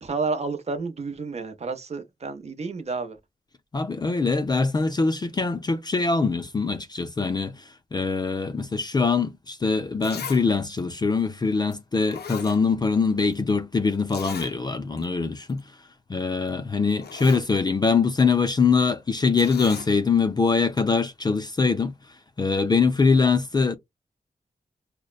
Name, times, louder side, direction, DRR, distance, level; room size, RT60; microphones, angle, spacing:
voice 1, 0.0-3.2, right 4 dB, 40° right, 0.7 m, -30 dB
voice 2, 3.7-15.6 16.1-21.9 22.4-23.7, left 4 dB, 25° left, 0.4 m, -23 dB
Zipper (clothing), 9.5-9.6 10.0-10.4 10.8-10.9 11.7-11.8 12.1-13.1 13.3-13.4 14.1-14.5 15.0-15.1 15.4-15.6 16.5-16.6 16.9-17.5 19.4-19.9 20.8-20.9, left 7 dB, 85° left, 0.6 m, -38 dB
6.2 x 2.1 x 2.3 m
wide cardioid pair, 180°, 16 cm